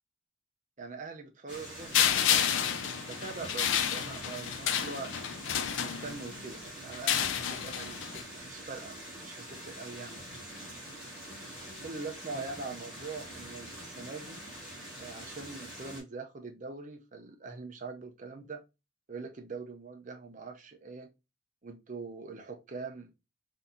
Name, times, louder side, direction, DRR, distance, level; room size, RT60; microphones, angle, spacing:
voice 1, 0.8-5.1 5.7-10.5 11.8-14.4 15.0-18.6 19.1-21.1 21.6-23.1, right 4 dB, 40° right, 0.6 m, -43 dB
sound 1, 1.5-16.0, equal, 5° right, 1.4 m, -45 dB
sound 2, 1.9-6.4 6.9-8.2, left 9 dB, 75° left, 0.4 m, -30 dB
4.0 x 2.7 x 2.2 m
head